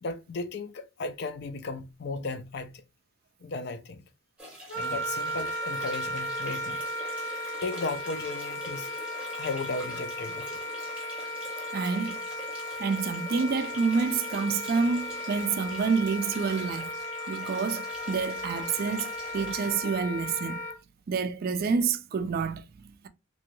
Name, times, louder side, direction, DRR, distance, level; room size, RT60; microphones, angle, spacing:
voice 1, 0.0-2.8 3.4-4.0 4.7-6.8 7.6-8.9 9.4-10.6, left 3 dB, 55° left, 0.4 m, -35 dB
sound 1, 4.4-19.7, right 2 dB, 5° right, 0.8 m, -45 dB
Wind instrument woodwind instrument, 4.7-20.8, left 1 dB, 75° left, 1.2 m, -36 dB
voice 2, 11.7-12.2 12.8-16.9 17.3-20.6 21.1-23.1, right 5 dB, 50° right, 0.3 m, -28 dB
2.9 x 2.3 x 2.9 m
head